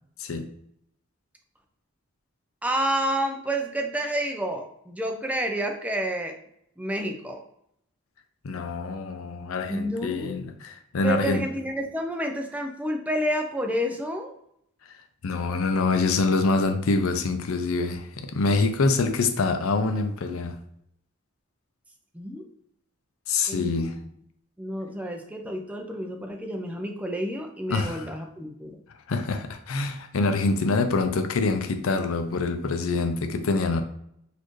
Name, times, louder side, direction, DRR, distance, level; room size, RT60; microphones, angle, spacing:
voice 1, 0.2-0.5 8.4-11.4 15.2-20.6 23.3-24.0 27.7-28.1 29.1-33.8, left 3 dB, 85° left, 0.5 m, -25 dB
voice 2, 2.6-6.3 6.8-7.4 9.7-10.3 11.0-14.3 22.1-22.4 23.5-23.9 24.6-28.8, equal, 5° right, 0.4 m, -29 dB
4.1 x 2.6 x 3.1 m
head